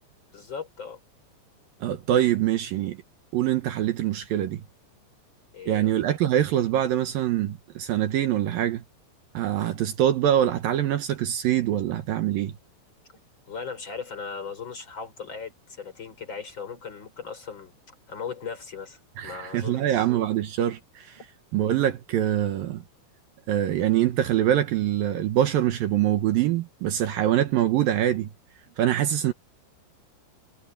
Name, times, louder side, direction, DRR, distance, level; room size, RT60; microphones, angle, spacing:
voice 1, 0.3-1.0 5.5-5.9 13.5-17.7 18.1-20.1 21.2-21.3 28.7-28.8, left 6 dB, 25° left, 4.6 m, -38 dB
voice 2, 1.8-3.0 3.3-4.6 5.7-8.8 9.3-12.5 19.2-21.2 21.5-22.8 23.5-28.3 28.8-29.3, right 11 dB, 75° right, 2.1 m, -24 dB
omnidirectional pair, 5.6 m